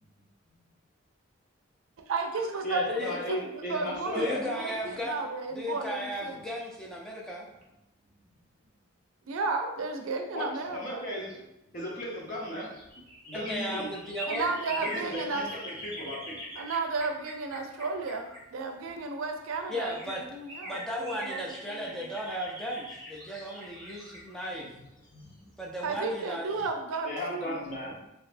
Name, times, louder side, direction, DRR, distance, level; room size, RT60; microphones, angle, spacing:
voice 1, 2.1-6.4 9.3-11.0 14.3-15.5 16.6-22.1 25.8-27.7, right 3 dB, 90° right, 5 dB, 0.4 m, -33 dB
voice 2, 2.6-4.4 10.3-11.5 11.7-12.8 13.3-13.9 14.3-14.4 14.7-16.4 24.8-25.5 25.8-25.9 27.0-28.1, equal, 40° left, -4 dB, 0.8 m, -36 dB
voice 3, 4.2-5.2 5.5-7.5 13.3-14.5 19.7-20.2 20.7-24.7 25.6-26.7, equal, 5° left, -3 dB, 0.4 m, -35 dB
sound 1, 12.2-19.0 19.5-19.6 19.8-25.6 25.9-26.0, equal, 20° left, 1.1 m, -43 dB
3.2 x 2.7 x 2.5 m, 0.87 s
head